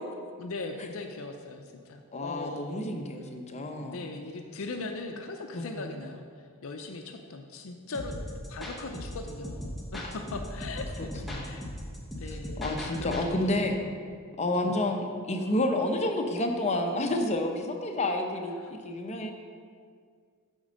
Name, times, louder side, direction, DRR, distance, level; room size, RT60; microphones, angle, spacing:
voice 1, 0.4-3.1 3.8-8.1 8.5-11.1 11.4-11.6 12.2-12.6 13.0-13.9 14.5-14.8 18.6-18.7, left 3 dB, 65° left, 4 dB, 0.6 m, -39 dB
voice 2, 2.1-4.0 5.6-5.8 10.0-10.1 11.2-11.6 12.6-13.7 14.4-19.3, left 1 dB, 30° left, 3 dB, 0.7 m, -30 dB
sound 1, 7.9-13.3, equal, ahead, 1.1 m, -38 dB
9.0 x 4.4 x 6.3 m, 2.1 s
head